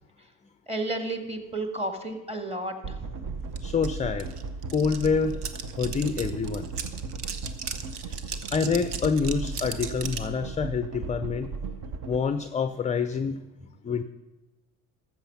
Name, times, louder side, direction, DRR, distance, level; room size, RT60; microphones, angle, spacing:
voice 1, 0.7-3.1, right 2 dB, 15° right, 6 dB, 2.0 m, -32 dB
sound 1, 2.8-12.2, right 4 dB, 50° right, 1.0 m, -36 dB
voice 2, 3.6-4.3 4.7-5.4 5.8-6.7 8.5-11.5 12.1-13.4 13.8-14.0, left 5 dB, 15° left, 11 dB, 0.4 m, -26 dB
sound 2, 3.6-3.7 3.8-10.3, right 6 dB, 90° right, 0.9 m, -37 dB
13.5 x 7.4 x 5.7 m, 1.1 s
hypercardioid pair, 65°, 45 cm